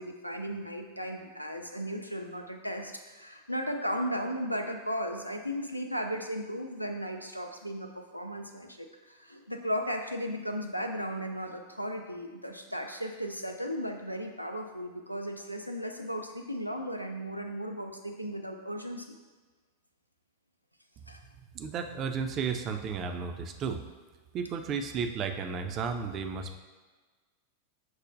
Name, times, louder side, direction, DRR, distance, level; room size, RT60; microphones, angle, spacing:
voice 1, 0.0-19.2 21.1-21.2, equal, 90° left, 3 dB, 0.3 m, -36 dB
voice 2, 21.5-23.8 24.3-26.6, right 6 dB, 35° right, 6 dB, 0.3 m, -33 dB
6.0 x 2.1 x 2.5 m, 1.3 s
figure-of-eight pair, 90°, 0 cm